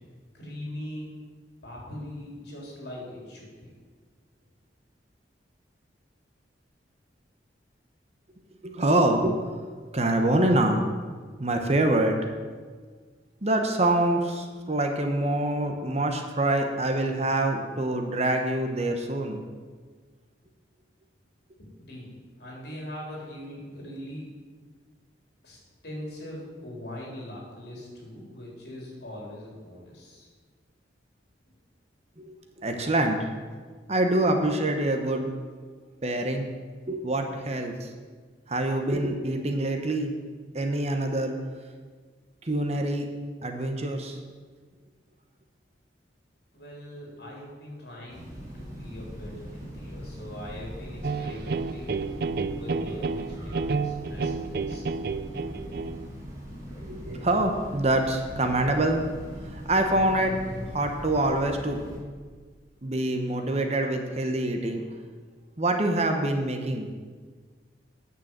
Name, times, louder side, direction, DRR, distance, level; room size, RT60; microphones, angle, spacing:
voice 1, 0.3-1.1 1.6-3.7 21.6-22.1 22.4-24.3 25.4-30.3 46.5-48.3 48.5-52.0 52.5-54.8, left 1 dB, 60° left, -3 dB, 3.7 m, -41 dB
voice 2, 8.6-9.4 9.9-10.8 11.4-12.2 13.4-19.4 32.2-33.3 33.9-35.3 36.0-36.5 36.9-37.9 38.5-40.1 40.5-41.4 42.4-43.1 43.4-44.2 56.8-59.0 59.4-60.4 60.7-61.8 62.8-64.8 65.6-66.9, right 1 dB, 35° right, 5 dB, 0.9 m, -25 dB
Train, 48.1-62.0, equal, 15° right, 3.0 m, -40 dB
sound 1, 51.0-56.1, right 4 dB, 55° right, 0.4 m, -30 dB
9.2 x 6.9 x 7.5 m, 1.5 s
head